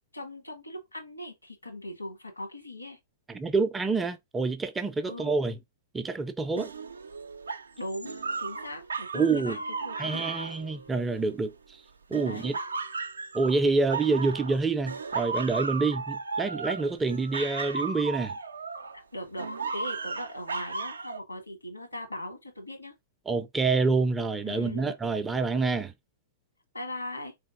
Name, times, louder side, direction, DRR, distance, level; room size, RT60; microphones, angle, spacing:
voice 1, 0.1-3.0 5.0-5.3 7.8-10.6 12.2-12.5 19.1-22.9 24.4-24.9 26.7-27.3, left 1 dB, 90° left, 1.2 m, -39 dB
voice 2, 3.3-5.6 5.9-6.7 9.1-9.6 10.0-11.5 12.1-12.5 13.3-18.3 23.3-25.9, right 4 dB, 10° right, 0.4 m, -27 dB
sound 1, 6.6-11.5 12.1-14.6 14.9-19.0 19.4-21.2, right 4 dB, 75° right, 0.4 m, -35 dB
3.9 x 3.3 x 2.5 m
figure-of-eight pair, 105°, 0 cm